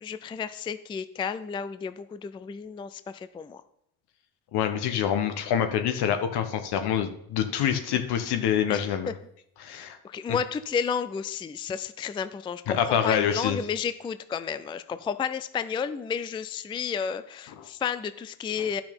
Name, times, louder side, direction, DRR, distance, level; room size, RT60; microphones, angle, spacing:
voice 1, 0.0-3.6 7.6-8.0 8.7-9.1 9.7-18.8, left 7 dB, 15° left, 13 dB, 0.3 m, -32 dB
voice 2, 4.5-9.1 9.6-10.0 12.7-13.6, left 9 dB, 75° left, 8 dB, 1.2 m, -26 dB
11.0 x 5.9 x 5.3 m, 0.73 s
cardioid pair, 110°, 40 cm